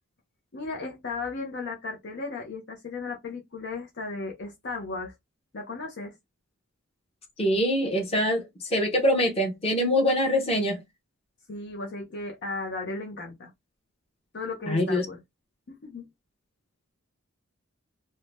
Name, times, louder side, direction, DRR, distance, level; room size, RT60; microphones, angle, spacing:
voice 1, 0.5-5.1 5.5-6.1 11.5-13.5 14.3-15.2 15.8-16.0, left 3 dB, 50° left, 0.6 m, -35 dB
voice 2, 7.4-10.8 14.7-15.1, equal, 25° left, 0.9 m, -24 dB
2.7 x 2.1 x 3.1 m
head